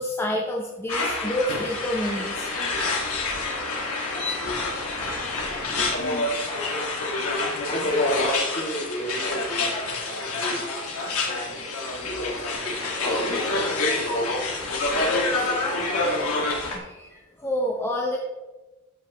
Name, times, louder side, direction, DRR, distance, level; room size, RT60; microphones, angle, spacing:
voice 1, 0.0-2.5 6.3-6.5 6.9-7.2 11.0-11.1 11.9-12.0 16.4-18.2, left 1 dB, 10° left, -2 dB, 0.9 m, -29 dB
sound 1, 0.9-16.8, left 2 dB, 85° left, 2.1 m, -27 dB
voice 2, 4.1-4.7 5.3-6.8 7.7-10.6 11.3-14.3 15.3-16.5, equal, 35° left, -3 dB, 2.7 m, -35 dB
14.5 x 5.5 x 3.1 m, 1.1 s
head